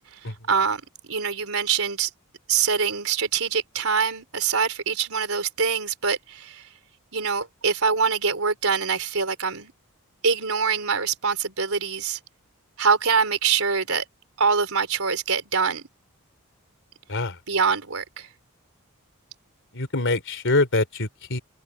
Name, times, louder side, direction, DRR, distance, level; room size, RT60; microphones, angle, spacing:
voice 1, 0.5-2.1 2.5-6.7 7.1-9.7 10.2-12.2 12.8-14.0 14.4-15.9 17.5-18.3, right 5 dB, 70° right, 5.1 m, -24 dB
voice 2, 19.7-21.4, left 2 dB, 60° left, 3.8 m, -24 dB
head